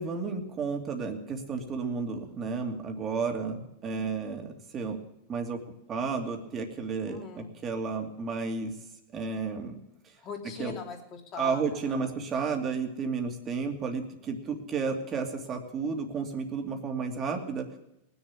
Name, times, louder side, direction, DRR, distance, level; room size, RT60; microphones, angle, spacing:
voice 1, 0.0-5.0 5.3-5.6 5.9-8.7 9.1-9.8 10.6-10.7 11.4-17.7, right 5 dB, 25° right, 3 dB, 2.5 m, -32 dB
voice 2, 7.0-7.5 10.2-12.2, left 5 dB, 30° left, 1 dB, 3.4 m, -41 dB
19.5 x 7.1 x 8.9 m, 0.84 s
hypercardioid pair, 130°, 0 cm